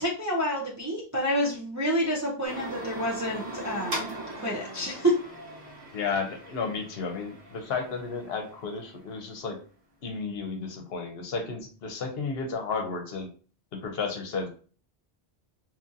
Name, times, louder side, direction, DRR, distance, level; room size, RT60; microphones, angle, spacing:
voice 1, 0.0-4.1 4.3-5.2, equal, 30° right, -3 dB, 0.3 m, -28 dB
sound 1, 2.4-9.1, right 1 dB, 55° right, 1.2 m, -40 dB
voice 2, 5.9-9.6 10.0-13.3 13.7-14.5, left 4 dB, 70° left, 4 dB, 0.8 m, -33 dB
2.8 x 2.5 x 2.5 m, 0.39 s
omnidirectional pair, 1.1 m